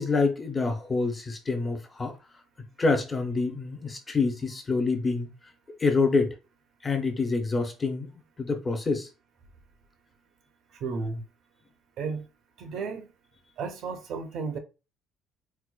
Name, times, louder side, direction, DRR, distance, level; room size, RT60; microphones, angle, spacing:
voice 1, 0.0-2.2 2.8-5.5 5.8-6.4 6.8-8.1 8.4-9.1, left 3 dB, 15° left, 0.5 m, -27 dB
voice 2, 10.7-11.2 12.0-12.3 12.6-13.1 13.6-14.6, right 4 dB, 50° right, 0.5 m, -33 dB
4.4 x 2.1 x 2.2 m
cardioid pair, 175°, 0 cm